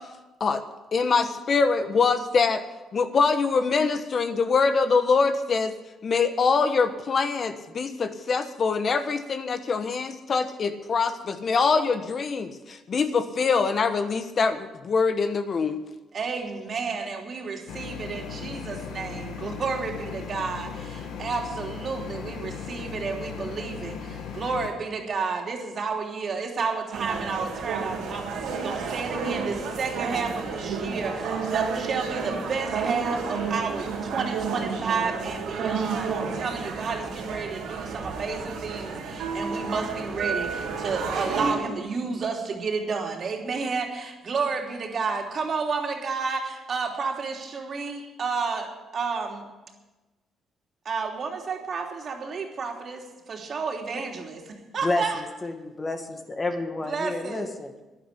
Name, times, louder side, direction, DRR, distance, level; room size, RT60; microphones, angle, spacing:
voice 1, 0.9-2.6 2.9-5.7 6.0-15.8, left 4 dB, 50° left, 9 dB, 1.2 m, -24 dB
voice 2, 16.1-49.5 50.8-55.2 56.9-57.4, right 4 dB, 50° right, 2 dB, 3.2 m, -31 dB
sound 1, 17.7-24.7, left 6 dB, 80° left, 1.9 m, -37 dB
sound 2, 26.9-41.5, right 5 dB, 90° right, 3.2 m, -31 dB
voice 3, 54.8-57.7, left 2 dB, 25° left, 6 dB, 2.0 m, -30 dB
11.0 x 11.0 x 9.9 m, 1.1 s
cardioid pair, 90°, 0 cm